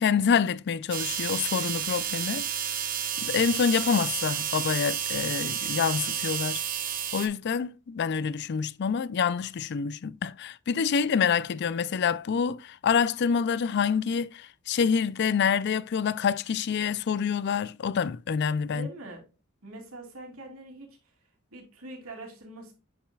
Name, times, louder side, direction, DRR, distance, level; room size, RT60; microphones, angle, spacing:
voice 1, 0.0-2.5 3.2-6.6 7.1-18.9, left 6 dB, 55° left, 0.4 m, -27 dB
sound 1, 0.9-7.3, right 9 dB, 40° right, 1.0 m, -31 dB
voice 2, 18.7-19.2 19.6-21.1 21.5-22.7, right 2 dB, 80° right, 2.8 m, -43 dB
8.1 x 6.2 x 2.3 m
head